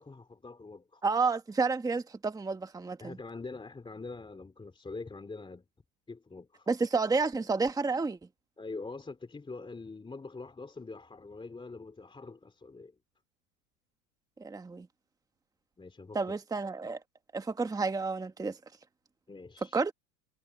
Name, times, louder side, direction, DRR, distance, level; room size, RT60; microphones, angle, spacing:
voice 1, 0.0-1.0 3.0-5.6 6.1-6.7 8.6-13.0 15.8-16.2 19.3-19.8, left 3 dB, 10° left, 3.4 m, -44 dB
voice 2, 1.0-3.2 6.7-8.2 14.4-14.9 16.1-17.0 17.3-18.6 19.7-19.9, right 4 dB, 10° right, 1.4 m, -30 dB
hypercardioid pair, 115°, 47 cm